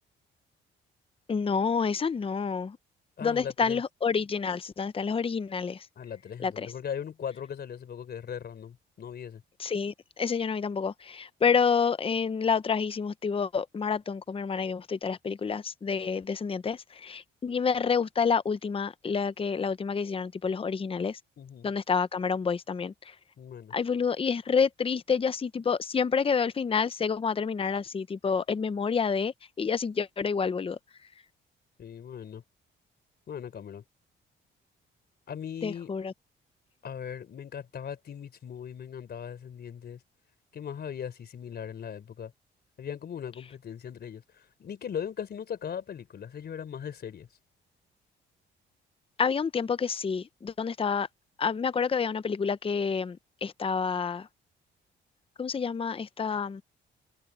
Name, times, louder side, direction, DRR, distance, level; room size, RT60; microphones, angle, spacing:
voice 1, 1.3-2.8 3.2-5.9 6.4-6.7 9.6-21.2 21.6-23.1 23.7-30.8 35.6-36.1 49.2-51.1 51.4-54.3 55.4-56.6, left 6 dB, 30° left, 0.8 m, -28 dB
voice 2, 3.2-3.8 6.0-9.4 21.4-21.7 23.4-23.8 31.8-32.4 33.3-33.8 35.3-35.9 36.8-40.0 40.5-42.3 42.8-47.3, left 8 dB, 55° left, 3.8 m, -39 dB
cardioid pair, 90°, 20 cm